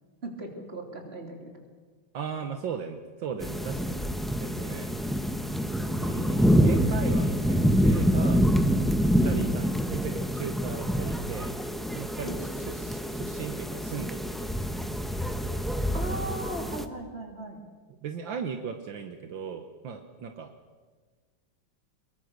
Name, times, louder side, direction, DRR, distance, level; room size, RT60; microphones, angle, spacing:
voice 1, 0.2-1.6 9.4-9.6 12.2-12.4 15.9-17.6, right 1 dB, 30° right, 3 dB, 3.3 m, -38 dB
voice 2, 2.1-5.0 6.0-8.5 9.2-11.6 11.9-14.5 18.0-20.5, right 6 dB, 70° right, 6 dB, 1.9 m, -37 dB
sound 1, 3.4-16.8, equal, ahead, 0.6 m, -26 dB
24.0 x 21.5 x 6.6 m, 1.5 s
omnidirectional pair, 2.2 m